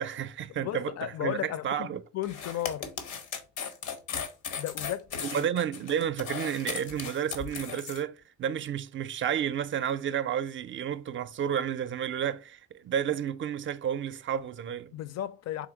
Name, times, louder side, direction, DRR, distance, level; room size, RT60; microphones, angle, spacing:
voice 1, 0.0-2.0 5.2-14.9, right 9 dB, 40° right, 0.4 m, -31 dB
voice 2, 0.6-1.9 2.1-2.9 4.6-5.5 14.9-15.7, left 12 dB, 60° left, 0.5 m, -34 dB
sound 1, 2.2-8.0, left 7 dB, 90° left, 0.8 m, -37 dB
3.8 x 2.8 x 3.8 m
cardioid pair, 90°, 30 cm